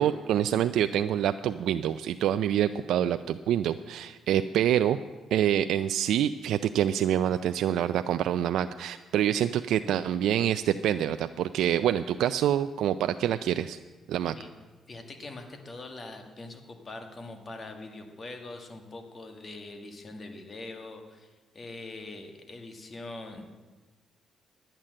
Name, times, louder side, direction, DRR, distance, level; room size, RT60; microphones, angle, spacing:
voice 1, 0.0-5.0 5.3-13.8 14.1-14.3, right 10 dB, 80° right, 10 dB, 0.3 m, -26 dB
voice 2, 14.9-23.4, left 2 dB, 40° left, 5 dB, 1.8 m, -43 dB
11.0 x 8.9 x 7.6 m, 1.3 s
cardioid pair, 90°, 0 cm